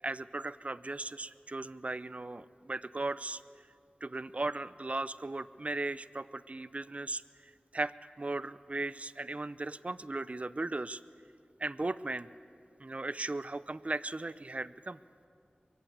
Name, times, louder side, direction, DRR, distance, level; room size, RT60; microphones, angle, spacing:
voice 1, 0.0-3.4 4.0-7.2 7.7-11.0 11.6-12.3 12.8-15.0, right 2 dB, 45° right, 16 dB, 0.6 m, -37 dB
23.5 x 23.0 x 9.4 m, 2.4 s
wide cardioid pair, 55°, 3 cm